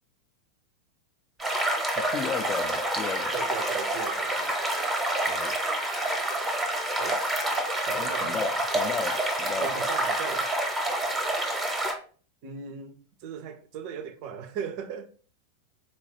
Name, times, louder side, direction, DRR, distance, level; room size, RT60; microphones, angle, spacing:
sound 1, 1.4-11.9, right 1 dB, 10° right, 0.8 m, -28 dB
voice 1, 2.0-3.4 5.3-5.5 7.9-9.7, left 6 dB, 30° left, 0.4 m, -34 dB
voice 2, 3.3-4.5 7.0-7.2 7.8-8.4 9.6-10.5 12.4-15.1, right 7 dB, 45° right, 0.4 m, -37 dB
4.1 x 2.2 x 2.8 m
figure-of-eight pair, 90°, 0 cm